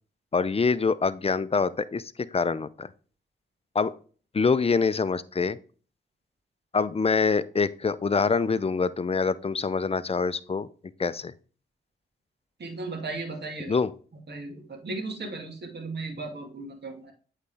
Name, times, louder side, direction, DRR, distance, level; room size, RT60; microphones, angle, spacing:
voice 1, 0.3-2.0 2.3-2.9 3.7-3.9 4.3-5.6 6.7-10.7 11.0-11.3 13.7-13.9, left 4 dB, 30° left, 16 dB, 0.5 m, -25 dB
voice 2, 12.6-13.8 14.3-17.1, right 3 dB, 55° right, 3 dB, 2.1 m, -36 dB
8.3 x 4.1 x 3.4 m, 0.40 s
supercardioid pair, 45°, 21 cm